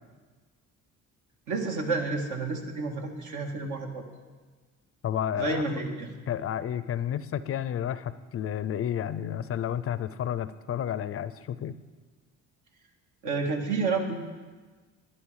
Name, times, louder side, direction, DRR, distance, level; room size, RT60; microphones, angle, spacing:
voice 1, 1.5-4.0 5.3-6.1 13.2-14.2, right 3 dB, 70° right, 2 dB, 1.7 m, -30 dB
voice 2, 5.0-5.6 6.3-11.7, left 9 dB, 45° left, 16 dB, 0.5 m, -31 dB
12.0 x 10.0 x 4.8 m, 1.4 s
supercardioid pair, 85°, 31 cm